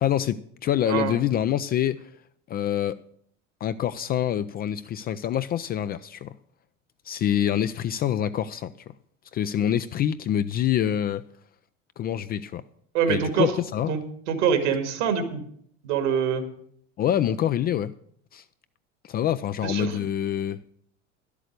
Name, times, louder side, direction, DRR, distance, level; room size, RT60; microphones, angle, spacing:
voice 1, 0.0-2.1 2.5-3.0 3.6-6.3 7.1-8.7 9.3-11.2 12.0-12.6 13.1-14.0 17.0-17.9 18.3-18.4 19.0-20.6, left 10 dB, 25° left, 0.4 m, -26 dB
voice 2, 0.9-1.2 12.9-13.5 13.9-14.0 14.3-15.4 15.8-16.5 19.6-20.0, right 7 dB, 65° right, 2.1 m, -24 dB
11.5 x 8.2 x 6.5 m
figure-of-eight pair, 75°, 38 cm